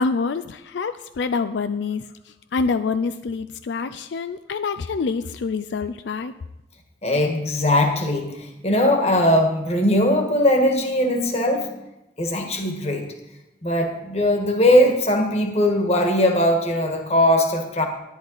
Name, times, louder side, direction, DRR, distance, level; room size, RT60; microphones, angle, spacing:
voice 1, 0.0-6.3, left 4 dB, 85° left, 11 dB, 0.4 m, -26 dB
voice 2, 7.0-11.8 12.2-13.1 13.6-17.9, left 1 dB, 35° left, 3 dB, 1.5 m, -20 dB
11.0 x 10.5 x 4.0 m, 0.91 s
head